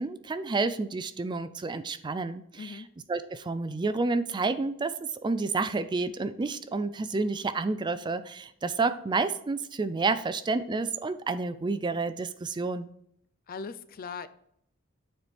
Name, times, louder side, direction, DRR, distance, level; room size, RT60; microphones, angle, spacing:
voice 1, 0.0-2.8 3.1-4.9 5.2-12.9, right 3 dB, 20° right, 12 dB, 0.4 m, -30 dB
voice 2, 13.5-14.3, left 5 dB, 45° left, 14 dB, 0.4 m, -39 dB
9.4 x 4.4 x 3.4 m, 0.72 s
head